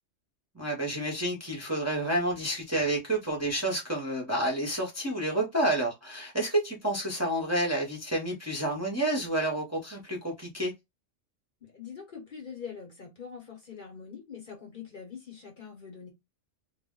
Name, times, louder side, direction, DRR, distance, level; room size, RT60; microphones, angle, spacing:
voice 1, 0.5-10.7, right 1 dB, 15° right, 0.6 m, -29 dB
voice 2, 11.6-16.1, left 6 dB, 50° left, 0.8 m, -44 dB
2.2 x 2.1 x 3.5 m
omnidirectional pair, 1.2 m